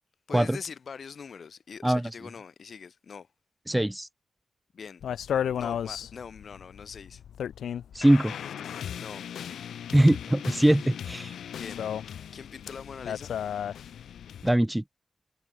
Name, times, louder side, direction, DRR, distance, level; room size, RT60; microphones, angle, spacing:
voice 1, 0.3-3.3 4.7-5.0 5.6-7.2 9.0-9.3 11.6-13.4, left 6 dB, 55° left, 2.5 m, -43 dB
voice 2, 3.7-4.1 7.9-8.3 9.9-11.3 14.4-14.8, right 1 dB, 10° right, 1.0 m, -22 dB
sound 1, 5.0-14.5, left 9 dB, 90° left, 0.7 m, -35 dB
wide cardioid pair, 105°, 0 cm